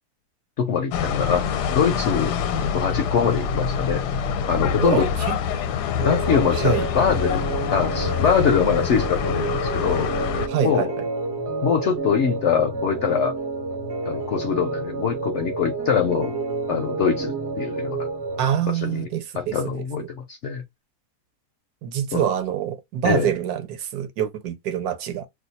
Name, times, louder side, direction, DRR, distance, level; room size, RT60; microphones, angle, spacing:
voice 1, 0.6-2.3 2.7-4.0 4.5-5.1 6.0-7.4 7.7-10.1 10.6-10.9 11.6-13.3 14.1-16.3 16.7-18.1 18.8-19.1 19.3-20.6 22.1-22.3 23.0-23.3, left 7 dB, 65° left, 0.7 m, -23 dB
sound 1, 0.9-10.5, left 7 dB, 80° left, 1.1 m, -26 dB
voice 2, 4.8-5.4 6.3-6.9 10.5-11.0 18.4-20.1 21.8-25.3, right 10 dB, 70° right, 1.1 m, -26 dB
sound 2, 6.0-18.5, right 3 dB, 55° right, 0.9 m, -30 dB
2.8 x 2.3 x 3.9 m
omnidirectional pair, 1.7 m